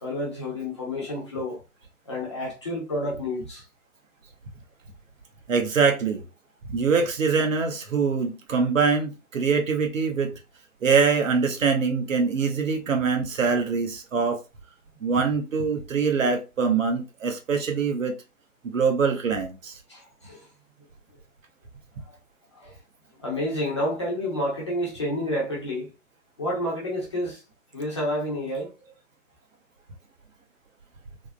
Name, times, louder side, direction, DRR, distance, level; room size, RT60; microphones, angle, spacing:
voice 1, 0.0-1.6 2.1-3.6 19.9-20.5 22.1-22.2 22.5-22.7 23.2-25.9 26.4-27.4 27.7-28.7, left 1 dB, 20° left, 0.6 m, -29 dB
voice 2, 5.5-6.2 6.6-10.3 10.8-14.4 15.0-18.1 18.6-19.7, right 5 dB, 60° right, 0.9 m, -24 dB
3.4 x 2.0 x 2.2 m
figure-of-eight pair, 140°, 45 cm